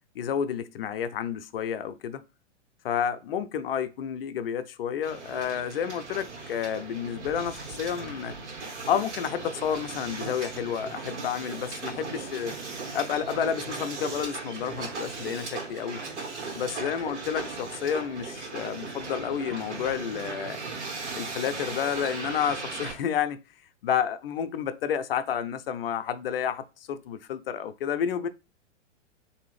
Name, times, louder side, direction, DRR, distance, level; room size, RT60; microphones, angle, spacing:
voice 1, 0.2-2.2 2.8-8.4 8.9-12.5 12.9-16.0 16.5-20.6 21.1-23.4 23.8-28.3, left 8 dB, 50° left, 0.4 m, -30 dB
Hiss, 5.0-22.9, right 4 dB, 65° right, 1.5 m, -37 dB
3.6 x 2.7 x 3.3 m
figure-of-eight pair, 110°, 37 cm